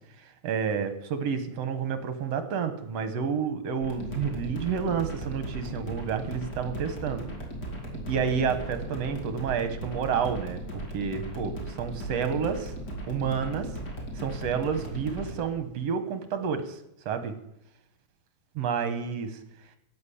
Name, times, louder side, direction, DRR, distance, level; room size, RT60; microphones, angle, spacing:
voice 1, 0.4-7.3 8.1-12.7 13.1-13.7 14.2-16.8 17.1-17.3 18.6-19.4, right 6 dB, 65° right, 9 dB, 2.3 m, -30 dB
sound 1, 3.8-15.4, right 1 dB, 35° left, 3.4 m, -37 dB
13.0 x 10.0 x 8.5 m, 0.80 s
omnidirectional pair, 3.3 m